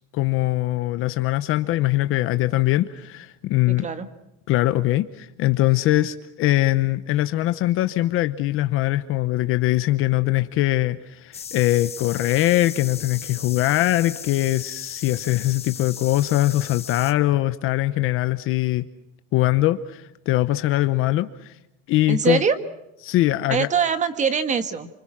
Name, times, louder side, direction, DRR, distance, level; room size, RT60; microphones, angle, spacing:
voice 1, 0.1-3.9 4.5-18.9 19.3-21.5 21.9-22.4 23.0-23.7, left 16 dB, 30° left, 11 dB, 0.8 m, -22 dB
sound 1, 11.3-17.1, left 7 dB, 15° left, 1.1 m, -36 dB
voice 2, 22.1-22.6 23.5-24.9, right 6 dB, 15° right, 11 dB, 1.5 m, -22 dB
29.0 x 26.0 x 6.1 m, 0.89 s
supercardioid pair, 165°, 42 cm